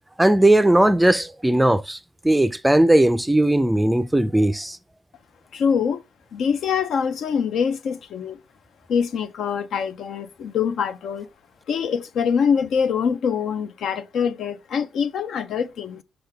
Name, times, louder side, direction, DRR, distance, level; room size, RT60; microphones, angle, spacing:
voice 1, 0.2-4.8, right 1 dB, 10° right, 0.4 m, -18 dB
voice 2, 5.5-6.0 6.3-8.4 8.9-11.3 11.7-16.0, left 7 dB, 70° left, 0.6 m, -24 dB
6.3 x 4.8 x 3.5 m
cardioid pair, 90°, 0 cm